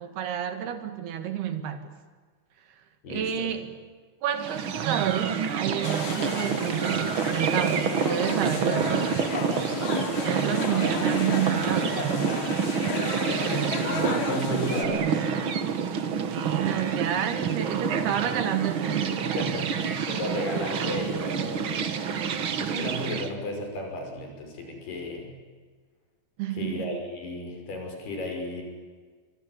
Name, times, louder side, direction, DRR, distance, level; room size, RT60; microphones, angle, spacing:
voice 1, 0.0-1.8 3.1-3.7 4.2-9.2 10.3-12.2 16.2-19.3 26.4-26.8, right 9 dB, 90° right, 8 dB, 4.1 m, -29 dB
voice 2, 3.0-3.5 9.0-9.1 10.6-11.2 11.9-12.4 12.9-15.3 19.2-25.3 26.5-28.6, left 1 dB, 85° left, 3 dB, 7.8 m, -34 dB
sound 1, 4.3-23.3, right 6 dB, 60° right, 1.3 m, -28 dB
sound 2, 5.8-14.9, left 6 dB, 60° left, 4.0 m, -34 dB
24.5 x 24.0 x 9.9 m, 1.5 s
omnidirectional pair, 4.4 m